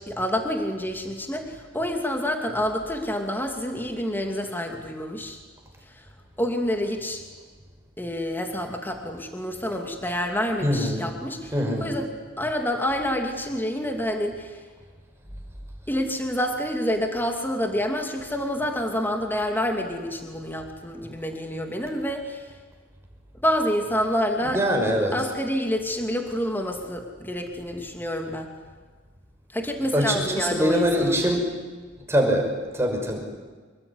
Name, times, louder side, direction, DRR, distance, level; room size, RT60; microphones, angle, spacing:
voice 1, 0.0-5.4 5.9-6.1 6.4-7.2 8.0-12.1 12.4-14.6 15.9-22.5 23.4-24.6 25.1-28.5 29.5-31.4, equal, 10° left, 4 dB, 2.6 m, -28 dB
voice 2, 10.6-11.1 11.5-11.9 24.4-25.1 29.9-31.5 32.1-33.2, equal, 15° right, 1 dB, 6.0 m, -23 dB
26.0 x 22.0 x 9.9 m, 1.4 s
head